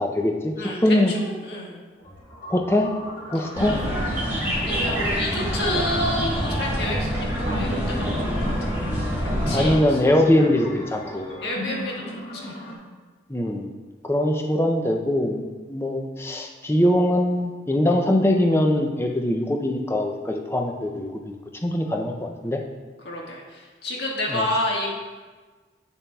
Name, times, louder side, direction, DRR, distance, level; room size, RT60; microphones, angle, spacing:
voice 1, 0.0-1.1 2.5-2.9 3.3-3.8 9.5-11.3 13.3-13.7 14.0-21.4 21.6-22.1 22.4-22.6 24.3-24.4, left 1 dB, 15° left, 2 dB, 0.5 m, -22 dB
voice 2, 0.6-1.8 4.5-8.5 8.8-8.9 9.5-10.5 11.4-12.5 23.0-25.0, left 1 dB, 65° left, -3 dB, 1.5 m, -30 dB
sound 1, 2.0-12.7, left 1 dB, 50° left, 2.1 m, -37 dB
sound 2, 3.6-9.8, equal, 10° right, 1.5 m, -26 dB
8.4 x 7.0 x 2.3 m, 1.3 s
head